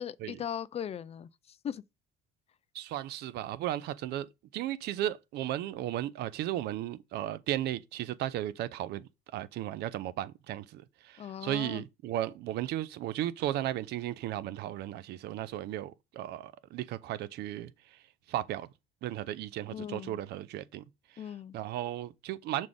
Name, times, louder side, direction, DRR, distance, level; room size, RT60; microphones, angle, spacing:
voice 1, 0.0-1.8 11.2-11.8 19.7-20.2 21.2-21.6, left 9 dB, 40° left, 0.4 m, -39 dB
voice 2, 2.7-18.0 18.3-18.7 19.0-20.8 21.5-22.7, right 13 dB, 80° right, 0.6 m, -35 dB
6.3 x 4.1 x 3.6 m
cardioid pair, 110°, 17 cm